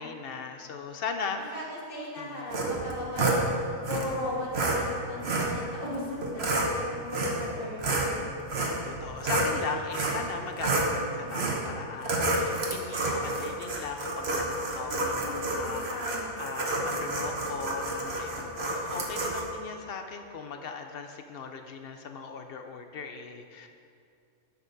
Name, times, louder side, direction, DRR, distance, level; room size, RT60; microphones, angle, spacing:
voice 1, 0.0-1.6 2.2-2.3 7.0-7.1 8.8-23.7, left 5 dB, 60° left, 6 dB, 0.7 m, -38 dB
voice 2, 1.5-3.4 3.9-8.3 11.0-11.4 12.9-13.5 14.8-16.3, left 1 dB, 40° left, -6 dB, 2.2 m, -38 dB
sound 1, 2.5-3.4 3.8-4.0 4.5-4.8 5.2-5.5 6.2-6.7 7.1-7.5 7.8-9.5 9.9-10.2 10.6-10.9 11.3-11.6 12.0-19.4, right 2 dB, 50° right, 1.3 m, -29 dB
10.5 x 6.5 x 4.0 m, 2.4 s
omnidirectional pair, 1.4 m